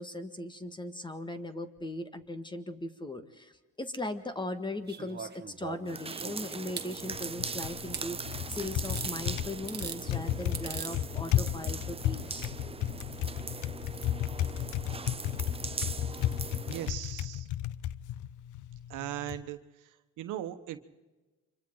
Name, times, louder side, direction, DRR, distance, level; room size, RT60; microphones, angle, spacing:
voice 1, 0.0-3.5 3.8-12.5, left 1 dB, 15° left, 9 dB, 1.8 m, -38 dB
sound 1, 4.9-6.9 7.9-8.1 8.8-9.1 9.6-10.0 10.5-10.9 12.2-12.3, right 6 dB, 35° right, 1.6 m, -40 dB
sound 2, 5.9-16.9, right 5 dB, 20° right, 0.6 m, -40 dB
Typing, 7.0-19.4, left 12 dB, 80° left, 0.7 m, -34 dB
voice 2, 16.7-17.5 18.9-19.6 20.2-20.8, right 12 dB, 90° right, 9 dB, 1.3 m, -38 dB
29.5 x 25.5 x 3.9 m, 1.2 s
cardioid pair, 90°, 30 cm